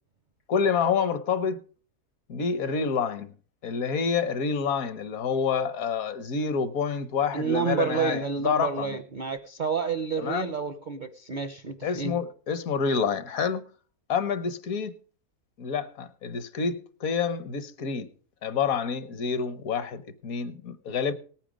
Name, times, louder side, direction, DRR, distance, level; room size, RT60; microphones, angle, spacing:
voice 1, 0.5-1.6 2.3-3.3 3.6-9.0 10.2-10.5 11.8-13.6 14.1-14.9 15.6-18.1 18.4-21.1, left 6 dB, 70° left, 1.4 m, -28 dB
voice 2, 7.3-12.2, right 6 dB, 50° right, 0.5 m, -29 dB
18.5 x 9.2 x 5.0 m
omnidirectional pair, 1.6 m